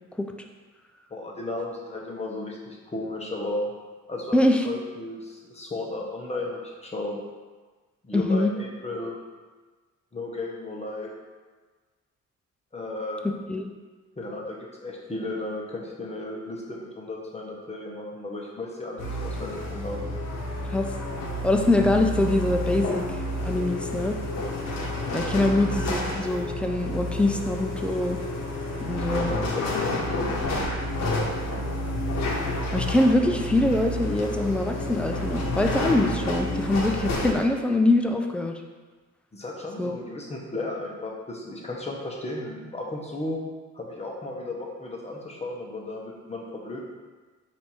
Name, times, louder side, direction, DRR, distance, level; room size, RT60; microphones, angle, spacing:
voice 1, 1.1-3.7 4.1-7.2 8.0-9.2 10.1-11.1 12.7-13.2 14.2-20.0 25.4-25.6 29.2-30.6 39.3-43.4 43.7-46.8, left 2 dB, 20° left, -2 dB, 1.0 m, -34 dB
voice 2, 4.3-4.6 8.1-8.5 13.2-13.7 20.7-20.9 21.4-23.0 23.4-24.2 25.1-28.2 28.8-29.3 32.7-38.6 39.8-40.0, left 2 dB, 5° left, 3 dB, 0.4 m, -24 dB
sound 1, 19.0-37.3, left 1 dB, 60° left, 1.0 m, -29 dB
4.3 x 2.7 x 4.3 m, 1.3 s
cardioid pair, 90°, 30 cm